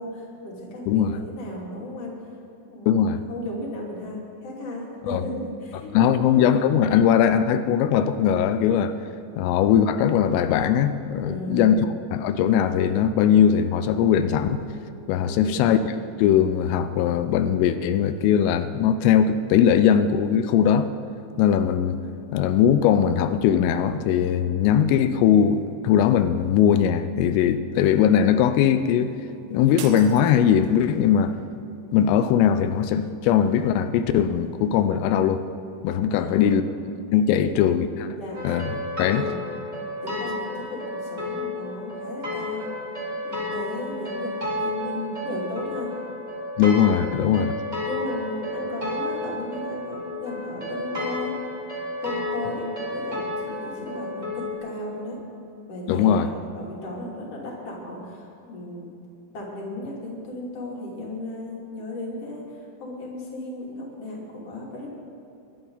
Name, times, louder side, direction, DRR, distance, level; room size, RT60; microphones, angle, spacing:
voice 1, 0.0-2.1 2.7-3.0 3.3-6.1 11.2-12.0 15.2-15.7 36.1-36.6 37.3-37.6 38.2-38.4 39.0-39.5 40.0-42.7 43.2-44.3 44.6-45.9 46.8-47.1 47.8-51.4 52.0-55.2 55.7-58.9 59.3-64.9, left 1 dB, 35° left, -4 dB, 3.2 m, -35 dB
voice 2, 0.9-1.2 2.9-3.2 5.1-5.2 5.9-8.9 9.4-11.9 12.1-14.7 15.1-20.9 21.4-22.0 22.3-29.1 29.5-31.4 31.9-35.4 35.8-36.6 37.1-38.1 38.4-38.7 39.0-39.3 46.6-47.5 55.9-56.3, left 8 dB, 90° left, 10 dB, 3.3 m, -20 dB
sound 1, 29.8-31.0, right 9 dB, 85° right, 3.3 m, -40 dB
sound 2, 38.3-54.5, left 2 dB, 15° right, 1.4 m, -32 dB
22.5 x 11.5 x 4.0 m, 2.8 s
omnidirectional pair, 5.7 m